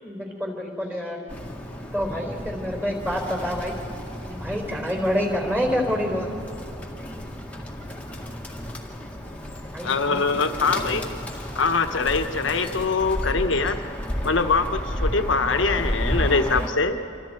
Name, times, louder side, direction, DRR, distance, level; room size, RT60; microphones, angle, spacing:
voice 1, 0.0-1.2 1.9-3.8 4.3-6.3 9.7-10.4 11.9-12.0, equal, 10° right, 1 dB, 4.3 m, -27 dB
Bird, 1.3-16.7, equal, 5° left, 1.8 m, -32 dB
voice 2, 9.8-11.1 11.5-13.8 14.2-17.0, left 4 dB, 75° left, 7 dB, 1.3 m, -23 dB
28.5 x 25.0 x 4.5 m, 2.9 s
head